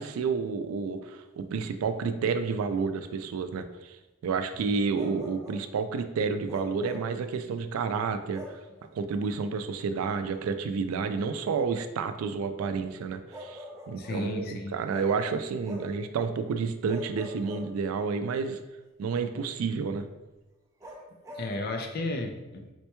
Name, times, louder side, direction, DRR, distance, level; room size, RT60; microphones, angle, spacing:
voice 1, 0.0-4.0 4.2-8.4 8.9-18.6 19.0-20.1, right 5 dB, 85° right, 9 dB, 0.3 m, -30 dB
Bark, 4.9-5.7 6.5-7.2 8.3-8.7 10.3-10.5 13.3-14.3 14.9-16.0 16.9-18.1 20.8-21.5, equal, 15° right, 0.4 m, -44 dB
voice 2, 14.0-14.7 21.4-22.7, left 2 dB, 45° left, 4 dB, 0.4 m, -33 dB
4.3 x 2.2 x 2.9 m, 1.1 s
head